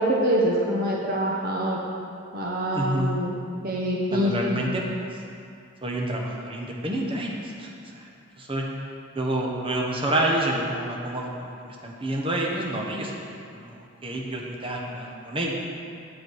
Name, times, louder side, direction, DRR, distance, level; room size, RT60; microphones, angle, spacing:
voice 1, 0.0-1.8 2.3-3.3 3.6-4.7, equal, 45° right, -3 dB, 0.9 m, -25 dB
voice 2, 2.7-3.2 4.1-4.8 5.8-8.1 8.4-8.7 9.1-15.6, right 1 dB, 25° right, -1 dB, 1.1 m, -28 dB
9.3 x 8.1 x 4.7 m, 2.5 s
head